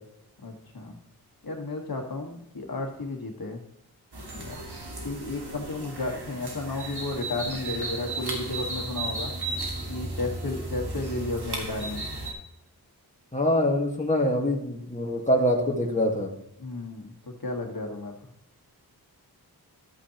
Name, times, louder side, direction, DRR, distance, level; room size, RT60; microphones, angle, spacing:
voice 1, 0.4-1.0 1.4-3.6 4.3-4.6 5.0-9.3 9.9-12.1 16.6-18.3, left 2 dB, 65° left, 2 dB, 1.7 m, -33 dB
sound 1, 4.1-12.3, right 2 dB, 85° right, 1.9 m, -35 dB
voice 2, 13.3-16.3, left 1 dB, 20° left, 0 dB, 1.6 m, -24 dB
12.5 x 8.4 x 3.0 m, 0.78 s
wide cardioid pair, 85°, 38 cm